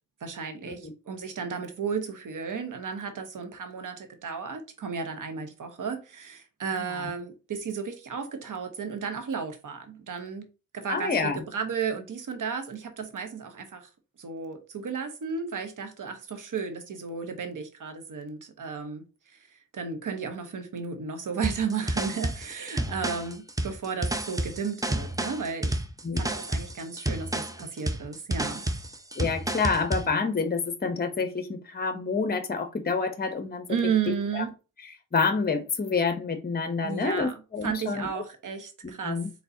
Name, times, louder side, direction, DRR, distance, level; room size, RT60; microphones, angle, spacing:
voice 1, 0.2-10.5 10.7-13.9 14.2-19.0 19.3-25.8 26.1-28.6 33.7-34.5 36.8-37.3 37.6-39.2, right 6 dB, 70° right, 1.1 m, -33 dB
voice 2, 6.8-7.1 10.9-11.4 26.0-26.2 29.2-33.7 34.3-34.5 35.1-38.1 38.8-39.3, left 4 dB, 30° left, 0.8 m, -28 dB
sound 1, 21.4-30.1, right 1 dB, 10° right, 0.6 m, -30 dB
4.1 x 3.7 x 2.7 m
cardioid pair, 45°, 32 cm